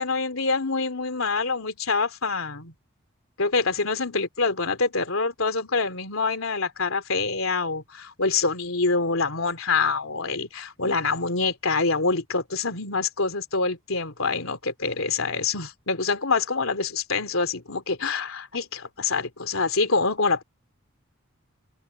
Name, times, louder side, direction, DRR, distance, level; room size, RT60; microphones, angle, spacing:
voice 1, 0.0-2.7 3.4-20.4, left 4 dB, 90° left, 3.1 m, -26 dB
open air
head